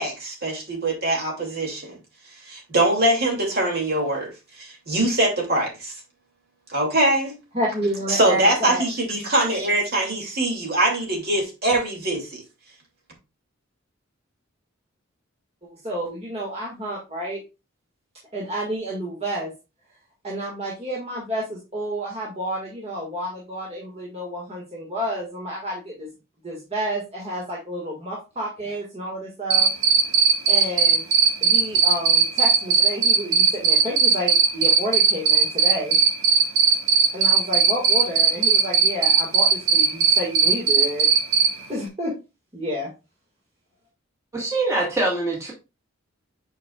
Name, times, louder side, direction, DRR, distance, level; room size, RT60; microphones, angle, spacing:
voice 1, 0.0-2.0 2.5-5.9 6.7-7.3 8.1-12.4, right 1 dB, 50° right, 2.5 m, -23 dB
voice 2, 7.5-8.9 15.6-17.4 18.3-19.5 20.2-26.1 26.4-29.7 30.5-31.0 31.4-36.0 37.1-41.1 41.7-42.1 42.5-42.9, equal, 30° right, 1.7 m, -30 dB
Cricket, 29.5-41.5, right 6 dB, 75° right, 1.6 m, -17 dB
voice 3, 44.3-45.5, right 2 dB, 15° right, 1.8 m, -24 dB
8.3 x 5.1 x 2.3 m
head